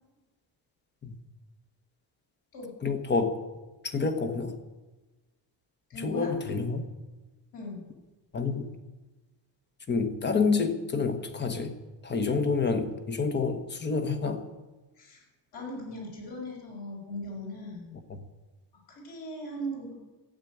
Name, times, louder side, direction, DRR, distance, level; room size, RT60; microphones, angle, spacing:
voice 1, 2.8-3.4 3.8-4.6 6.0-6.8 8.3-8.7 9.9-11.8 12.0-14.4 18.1-18.2, left 4 dB, 25° left, 8 dB, 1.1 m, -28 dB
voice 2, 5.9-6.3 7.5-7.8 15.0-15.2 15.5-17.9 18.9-19.9, equal, 55° left, -2 dB, 6.0 m, -38 dB
14.0 x 8.3 x 9.4 m, 1.2 s
cardioid pair, 170°, 45 cm